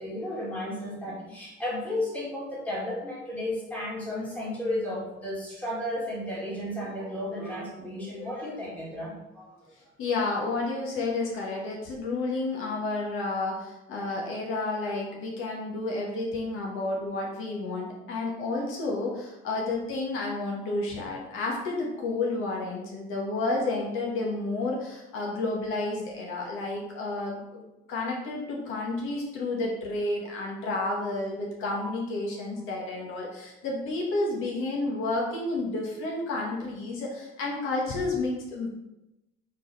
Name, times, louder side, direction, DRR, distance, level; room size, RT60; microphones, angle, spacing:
voice 1, 0.0-9.7, left 1 dB, 5° left, -7 dB, 2.3 m, -33 dB
voice 2, 10.0-38.7, left 2 dB, 75° left, -1 dB, 1.6 m, -31 dB
4.6 x 4.1 x 5.4 m, 0.94 s
cardioid pair, 145°, 21 cm